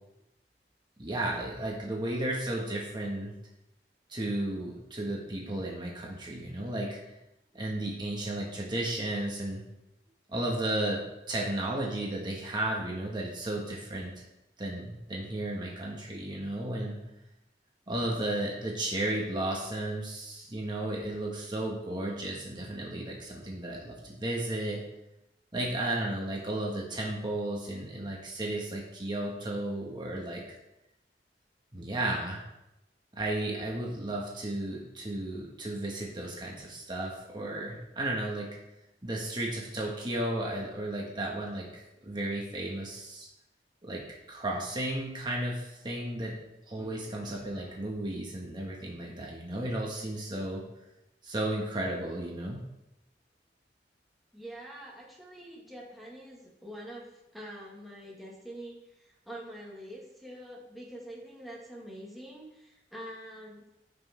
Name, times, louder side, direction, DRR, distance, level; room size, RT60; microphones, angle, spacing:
voice 1, 1.0-3.3 4.1-7.0 7.5-9.6 10.3-11.0 11.3-14.2 14.6-17.0 17.9-24.8 25.5-30.4 31.7-32.4 33.1-38.5 39.0-43.3 43.8-46.4 46.7-50.6 51.2-52.6, right 1 dB, 25° right, -2 dB, 1.6 m, -34 dB
voice 2, 54.3-63.6, right 1 dB, ahead, -4 dB, 1.7 m, -45 dB
14.0 x 6.2 x 3.5 m, 0.89 s
head